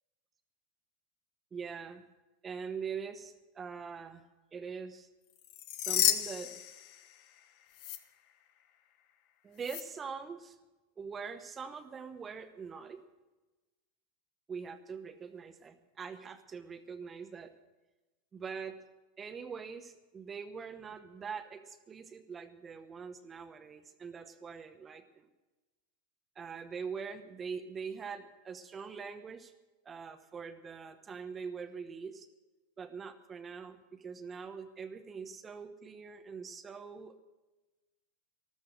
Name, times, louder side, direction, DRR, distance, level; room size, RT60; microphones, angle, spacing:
voice 1, 1.5-2.0 2.4-4.2 4.5-5.1 5.8-6.6 9.4-10.6 11.0-13.0 14.5-17.5 18.3-18.8 19.2-25.3 26.4-29.5 29.8-32.3 32.8-37.2, right 6 dB, 25° right, 9 dB, 1.0 m, -43 dB
sound 1, 5.4-7.4 7.7-8.0 9.6-9.8, left 11 dB, 55° left, 1.2 m, -32 dB
13.5 x 12.5 x 6.4 m, 1.1 s
hypercardioid pair, 110°, 0 cm